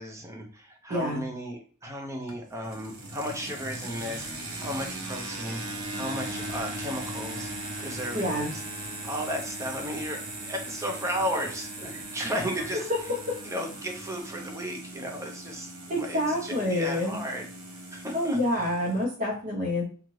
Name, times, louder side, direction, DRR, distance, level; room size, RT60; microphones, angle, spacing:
voice 1, 0.0-5.6 5.9-7.5 7.8-8.6 9.0-12.9 13.4-17.5 17.9-18.6, equal, 15° right, 2 dB, 0.6 m, -34 dB
voice 2, 0.9-1.3 8.1-8.5 12.7-13.4 15.9-17.2 18.1-19.8, left 1 dB, 40° right, -4 dB, 0.9 m, -28 dB
sound 1, 2.3-19.0, right 2 dB, 85° right, 0.9 m, -39 dB
2.8 x 2.4 x 3.1 m, 0.42 s
head